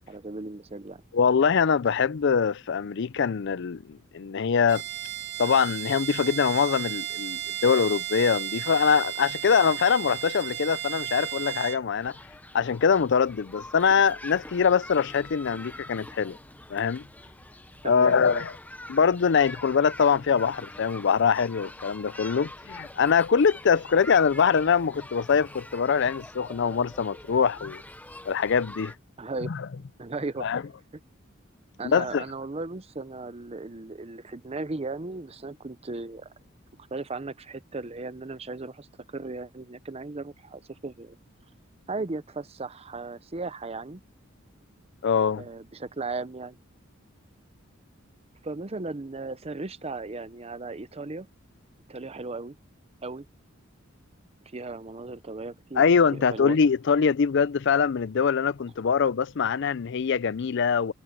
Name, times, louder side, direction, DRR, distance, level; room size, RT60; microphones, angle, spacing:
voice 1, 0.1-1.0 17.8-18.4 29.2-29.6 30.0-30.5 31.8-36.3 36.9-38.9 39.1-41.2 41.9-44.0 45.4-46.6 48.4-51.3 51.9-52.6 53.0-53.3 54.5-55.8 56.1-56.6, right 3 dB, 30° right, 0.7 m, -36 dB
voice 2, 1.1-4.8 5.4-12.2 12.5-16.4 16.7-17.0 17.8-18.5 18.9-27.8 28.3-28.9 29.5-29.6 30.4-30.6 31.8-32.2 45.0-45.5 55.8-60.9, left 6 dB, 60° left, 0.5 m, -23 dB
Bowed string instrument, 4.7-11.8, right 13 dB, 55° right, 1.4 m, -34 dB
sound 1, 12.0-29.0, left 1 dB, 10° left, 0.9 m, -44 dB
head